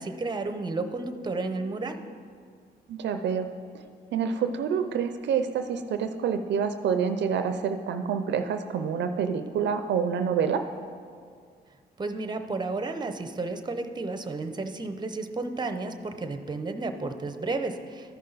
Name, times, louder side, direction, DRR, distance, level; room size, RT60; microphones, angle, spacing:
voice 1, 0.0-2.0 12.0-18.2, right 3 dB, 25° right, 8 dB, 0.7 m, -32 dB
voice 2, 2.9-3.5 4.1-10.6, right 7 dB, 80° right, 8 dB, 0.5 m, -27 dB
13.0 x 5.5 x 3.9 m, 2.1 s
cardioid pair, 70°, 18 cm